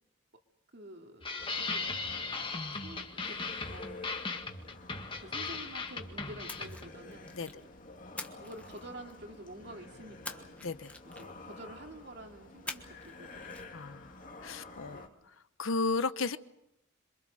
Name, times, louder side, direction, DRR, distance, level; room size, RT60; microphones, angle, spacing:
voice 1, 0.7-1.9 2.7-3.4 3.7-4.3 5.2-7.7 8.3-10.6 11.0-13.6 14.9-15.2, right 1 dB, 55° right, 3 dB, 2.7 m, -49 dB
sound 1, 1.2-6.9, left 4 dB, 25° left, 1.7 m, -38 dB
sound 2, 1.4-15.1, left 2 dB, 40° left, 2.2 m, -50 dB
Splash splatter, 6.5-7.6 8.2-9.3 10.2-11.5 12.7-13.2 13.4-13.6, left 2 dB, 5° left, 1.3 m, -45 dB
voice 2, 10.6-10.9 13.7-14.1 14.4-15.0 15.6-16.4, left 3 dB, 75° left, 13 dB, 0.9 m, -33 dB
27.0 x 24.0 x 6.5 m, 0.85 s
head